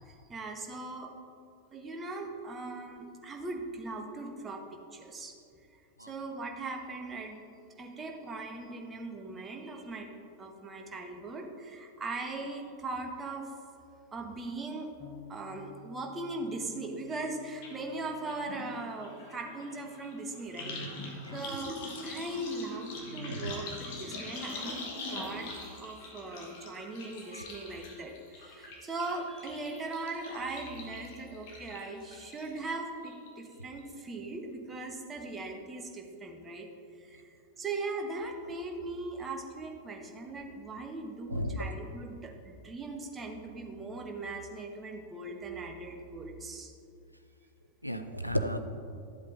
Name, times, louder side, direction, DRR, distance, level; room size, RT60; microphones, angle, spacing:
voice 1, 0.1-1.1 1.7-5.4 5.7-7.4 7.8-10.1 10.4-13.5 14.1-14.9 15.3-21.8 22.0-23.7 24.0-25.5 25.8-36.7 37.0-46.7, right 2 dB, 20° right, 2 dB, 1.1 m, -39 dB
sound 1, 15.0-21.2, left 3 dB, 20° left, 0.8 m, -55 dB
sound 2, 17.6-17.7 18.0-32.6 33.0-33.5 33.8-33.9, left 2 dB, 50° left, 1.7 m, -43 dB
voice 2, 41.3-41.7 47.8-48.6, equal, 90° right, 8 dB, 0.5 m, -34 dB
12.5 x 8.0 x 2.6 m, 2.5 s
figure-of-eight pair, 90°, 0 cm